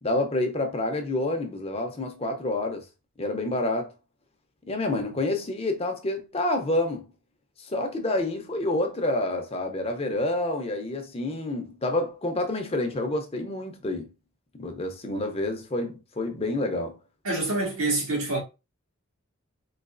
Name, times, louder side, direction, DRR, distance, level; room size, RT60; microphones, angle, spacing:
voice 1, 0.0-2.8 3.2-3.9 4.7-7.1 7.6-14.1 14.6-17.0, left 2 dB, 30° left, 0.6 m, -28 dB
voice 2, 17.2-18.4, right 2 dB, 80° right, 1.6 m, -26 dB
4.0 x 2.8 x 2.5 m
head